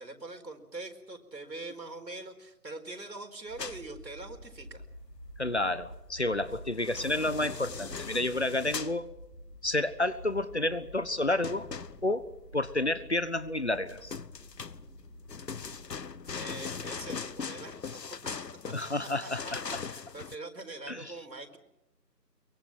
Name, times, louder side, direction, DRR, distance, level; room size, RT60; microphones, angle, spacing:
voice 1, 0.0-4.8 16.3-18.5 19.0-21.6, right 2 dB, 85° right, 5 dB, 4.6 m, -43 dB
sound 1, 3.5-17.4, equal, 5° right, 3.2 m, -49 dB
sound 2, 3.6-3.8 6.6-9.0 11.4-12.3 13.9-20.4, left 5 dB, 75° left, 1.1 m, -40 dB
voice 2, 5.4-9.1 9.6-11.7 12.0-12.2 12.5-14.2 18.7-19.8 20.9-21.1, left 2 dB, 40° left, 15 dB, 1.2 m, -30 dB
24.0 x 23.5 x 6.1 m, 0.88 s
figure-of-eight pair, 180°, 49 cm